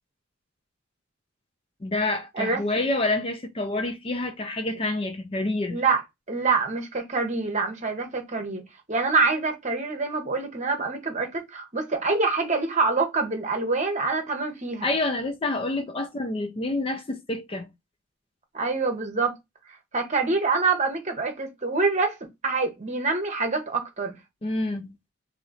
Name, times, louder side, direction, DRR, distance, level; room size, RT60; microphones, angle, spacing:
voice 1, 1.8-5.8 14.8-17.7 24.4-25.0, left 2 dB, 25° left, 0.5 m, -28 dB
voice 2, 5.7-6.0 6.3-8.6 8.9-14.9 18.5-19.4 19.9-22.2 22.4-24.2, right 4 dB, 35° right, 1.0 m, -25 dB
3.0 x 2.8 x 3.8 m
head